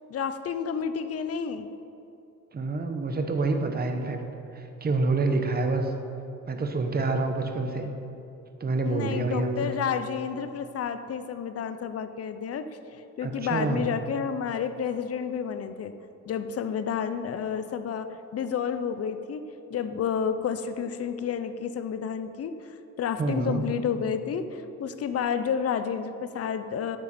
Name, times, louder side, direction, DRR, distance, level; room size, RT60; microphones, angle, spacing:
voice 1, 0.1-1.7 8.8-12.7 13.2-15.9 16.3-19.4 19.7-22.7 23.0-27.0, left 7 dB, 50° left, 10 dB, 0.7 m, -30 dB
voice 2, 2.5-4.2 4.5-5.9 6.5-7.9 8.6-9.7 13.2-13.9 23.2-23.7, right 3 dB, 30° right, 5 dB, 1.1 m, -27 dB
12.5 x 9.0 x 4.4 m, 2.7 s
cardioid pair, 110°, 32 cm